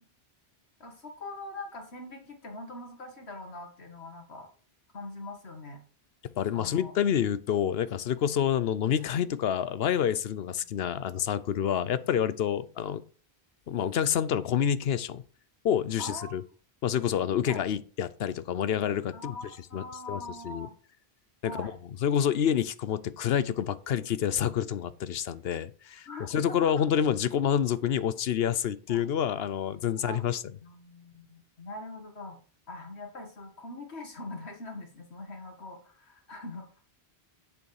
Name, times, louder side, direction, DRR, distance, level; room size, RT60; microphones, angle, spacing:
voice 1, 0.8-4.5 4.9-5.8 6.5-6.9 16.0-16.4 17.5-17.6 19.1-20.8 21.4-21.8 26.1-26.9 28.9-29.1 30.0-30.3 30.6-32.4 32.7-36.8, left 2 dB, 85° left, 2.3 m, -42 dB
voice 2, 6.4-13.0 13.7-15.2 15.6-16.4 16.8-19.4 19.7-20.7 21.4-21.7 22.0-30.4, left 9 dB, 70° left, 0.9 m, -28 dB
8.1 x 7.1 x 4.8 m
omnidirectional pair, 1.1 m